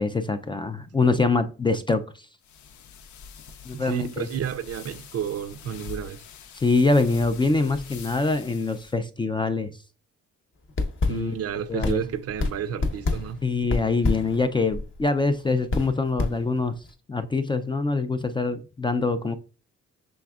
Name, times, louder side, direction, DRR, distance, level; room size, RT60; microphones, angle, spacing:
voice 1, 0.0-2.3 3.7-4.3 6.5-9.7 11.1-11.3 11.7-12.0 13.4-16.7 17.1-19.4, left 3 dB, 15° left, 0.3 m, -24 dB
sound 1, 2.4-9.0, left 6 dB, 70° left, 0.6 m, -44 dB
voice 2, 3.7-6.2 11.1-13.4, right 8 dB, 55° right, 0.5 m, -31 dB
sound 2, 10.6-16.9, left 3 dB, 40° left, 0.9 m, -29 dB
6.1 x 3.4 x 2.3 m
cardioid pair, 90°, 30 cm